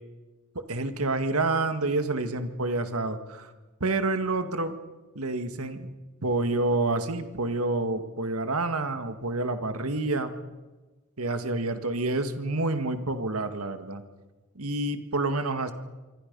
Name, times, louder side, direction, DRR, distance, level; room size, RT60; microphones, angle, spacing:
voice 1, 0.5-3.5 3.8-4.7 5.1-5.9 6.2-10.3 11.2-14.0 14.5-15.7, right 2 dB, 90° right, 8 dB, 1.9 m, -28 dB
26.0 x 24.0 x 5.4 m, 1.2 s
head